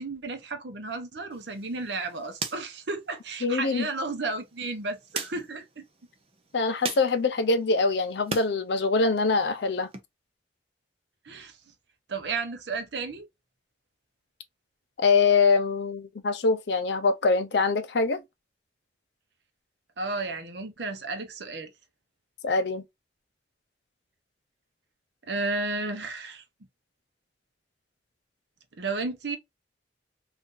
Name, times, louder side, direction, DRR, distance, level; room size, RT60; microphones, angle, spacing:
voice 1, 0.0-5.8 11.2-11.6 12.1-13.3 20.0-21.7 25.3-26.4 28.8-29.4, right 3 dB, 75° right, 0.8 m, -33 dB
sound 1, 1.3-8.5 8.9-10.0, right 4 dB, 35° right, 0.5 m, -41 dB
voice 2, 3.4-3.9 6.5-9.9 15.0-18.2 22.4-22.8, left 4 dB, 70° left, 0.6 m, -24 dB
2.7 x 2.5 x 3.7 m
head